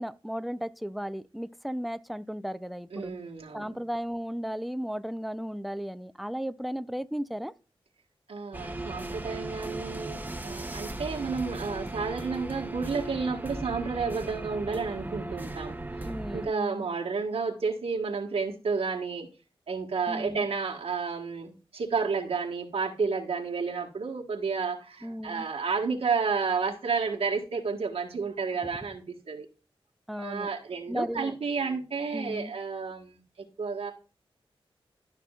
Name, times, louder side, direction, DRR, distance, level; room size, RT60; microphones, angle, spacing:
voice 1, 0.0-3.1 3.5-7.5 16.0-16.9 20.1-20.5 25.0-25.5 30.1-30.5 30.9-31.3 32.1-32.5, equal, ahead, 0.5 m, -35 dB
voice 2, 2.9-3.8 8.3-19.3 19.7-29.5 30.2-33.2 33.6-33.9, right 5 dB, 85° right, 1.4 m, -31 dB
sound 1, 8.5-16.5, right 2 dB, 15° right, 0.9 m, -37 dB
12.5 x 6.0 x 2.3 m
wide cardioid pair, 70°, 10 cm